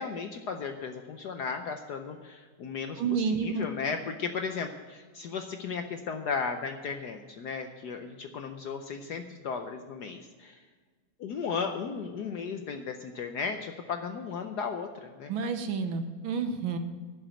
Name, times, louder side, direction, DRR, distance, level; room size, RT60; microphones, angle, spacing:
voice 1, 0.0-3.0 3.3-10.6 11.2-15.3, left 5 dB, 65° left, 5 dB, 1.0 m, -35 dB
voice 2, 3.0-3.7 15.3-16.8, right 5 dB, 70° right, 7 dB, 1.7 m, -30 dB
11.0 x 6.1 x 8.9 m, 1.5 s
omnidirectional pair, 2.4 m